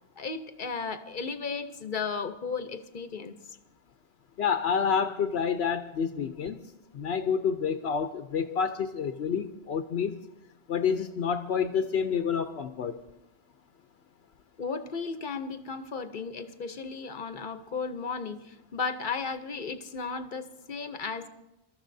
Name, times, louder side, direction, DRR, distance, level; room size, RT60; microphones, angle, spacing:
voice 1, 0.2-3.4 14.6-21.3, left 5 dB, 50° left, 10 dB, 0.9 m, -35 dB
voice 2, 4.4-6.6 6.9-10.2 10.7-13.0, left 6 dB, 75° left, 7 dB, 0.9 m, -28 dB
25.5 x 13.5 x 2.7 m, 0.94 s
omnidirectional pair, 1.1 m